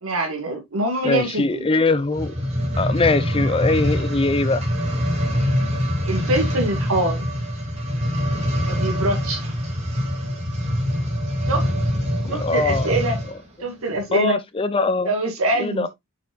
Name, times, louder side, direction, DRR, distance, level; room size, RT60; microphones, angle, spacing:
voice 1, 0.0-1.6 6.0-7.2 8.6-9.4 11.5-11.7 12.3-13.2 13.6-14.4 15.1-15.9, right 1 dB, 85° right, 2.0 m, -24 dB
voice 2, 1.0-2.4 2.8-4.6 12.2-12.9 14.1-15.1 15.6-15.9, left 3 dB, 25° left, 0.5 m, -22 dB
sound 1, 2.0-13.4 14.0-14.1, equal, 30° right, 2.4 m, -24 dB
7.1 x 5.8 x 2.4 m
head